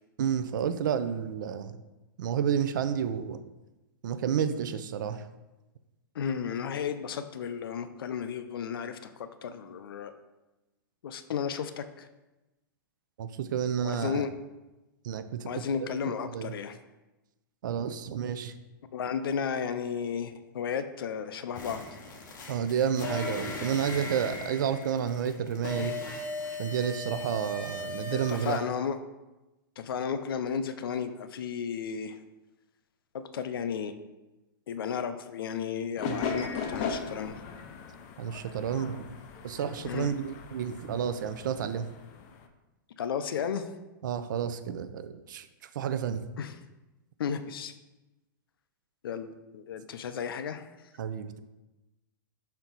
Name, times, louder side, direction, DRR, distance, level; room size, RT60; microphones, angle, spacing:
voice 1, 0.2-1.7 2.2-3.4 4.0-5.2 13.2-14.3 15.0-15.6 16.1-16.5 17.6-18.5 22.5-25.9 26.6-28.6 36.1-36.2 38.2-39.0 39.4-41.8 44.0-45.5 45.7-46.2 51.0-51.4, right 8 dB, 60° right, 11 dB, 0.5 m, -30 dB
voice 2, 6.1-10.1 11.0-12.1 13.8-14.3 15.5-16.8 18.9-21.8 25.8-26.0 28.1-29.0 29.8-32.2 33.3-33.9 34.7-37.4 39.8-40.1 43.0-43.7 46.4-46.6 47.2-47.7 49.0-50.7, left 7 dB, 85° left, 10 dB, 0.5 m, -33 dB
sound 1, 21.5-28.6, left 2 dB, 60° left, 1.2 m, -38 dB
sound 2, 36.0-42.5, left 5 dB, 25° left, 0.4 m, -38 dB
5.7 x 4.4 x 3.9 m, 1.0 s
hypercardioid pair, 165°, 12 cm